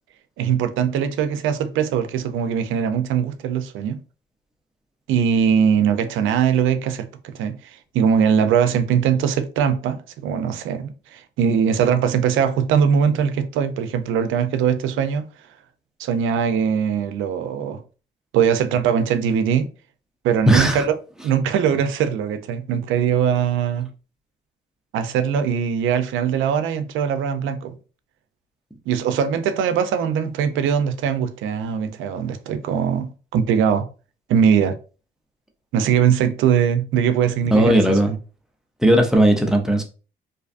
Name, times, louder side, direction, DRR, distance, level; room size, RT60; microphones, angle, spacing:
voice 1, 0.4-4.0 5.1-15.3 16.0-17.8 18.3-19.7 20.2-20.9 21.2-23.9 24.9-27.7 28.9-33.9 34.3-34.8 35.7-37.8, right 7 dB, 80° right, 0.4 m, -21 dB
voice 2, 20.5-20.8 37.5-38.1 38.8-39.8, right 1 dB, 5° right, 0.5 m, -16 dB
2.5 x 2.4 x 2.4 m
cardioid pair, 90°, 20 cm